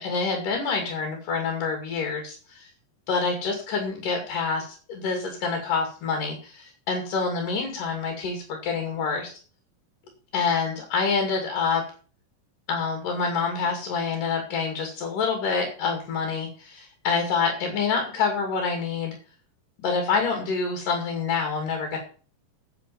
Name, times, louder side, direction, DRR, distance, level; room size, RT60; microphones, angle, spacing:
voice 1, 0.0-2.7 3.1-9.3 10.3-11.8 12.7-19.2 19.8-22.0, left 5 dB, 70° left, 3 dB, 3.9 m, -27 dB
9.4 x 8.8 x 7.0 m, 0.39 s
omnidirectional pair, 3.9 m